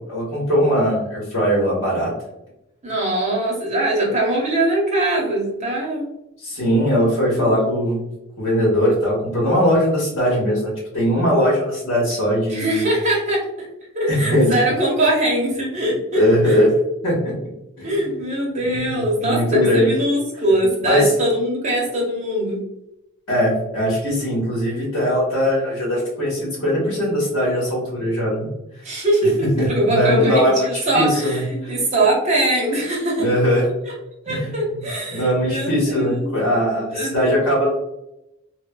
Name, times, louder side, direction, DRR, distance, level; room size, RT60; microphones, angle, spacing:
voice 1, 0.0-2.1 6.4-8.0 8.4-12.9 14.1-14.5 16.1-16.7 17.0-17.3 17.8-17.9 18.7-19.9 20.8-21.1 23.3-28.5 29.4-31.7 33.2-33.6 34.3-34.8 35.1-37.7, equal, 65° left, -5 dB, 1.1 m, -20 dB
voice 2, 2.8-6.1 6.8-7.7 12.5-13.7 13.9-16.6 17.8-22.6 28.8-33.3 33.8-33.9 34.3-36.3 36.9-37.4, right 1 dB, 35° right, -3 dB, 0.8 m, -22 dB
3.1 x 2.1 x 2.2 m, 0.87 s
head